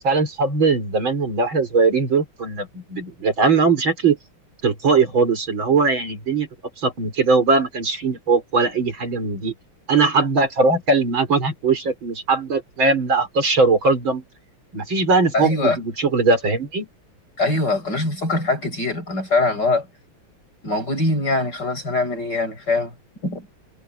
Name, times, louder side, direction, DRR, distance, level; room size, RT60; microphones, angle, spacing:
voice 1, 0.0-4.2 4.6-6.5 6.8-9.5 9.9-14.2 14.7-16.9, right 4 dB, 65° right, 5.1 m, -20 dB
voice 2, 15.3-15.8 17.4-19.9 20.6-22.9 23.2-23.5, left 2 dB, 50° left, 8.2 m, -22 dB
omnidirectional pair, 2.4 m